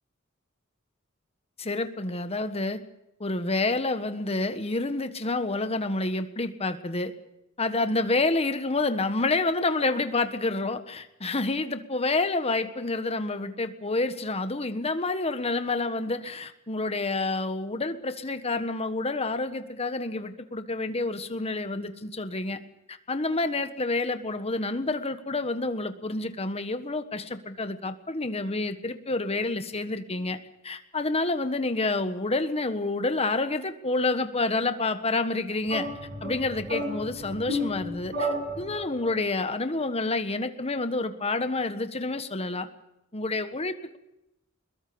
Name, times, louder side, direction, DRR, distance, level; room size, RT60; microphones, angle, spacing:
voice 1, 1.6-2.8 3.2-7.1 7.6-22.6 22.9-30.4 30.6-35.9 36.2-38.3 38.6-42.7 43.1-44.0, left 2 dB, 30° left, 9 dB, 1.5 m, -28 dB
sound 1, 35.7-39.1, equal, 50° right, 7.1 m, -32 dB
22.0 x 21.5 x 7.0 m, 0.86 s
head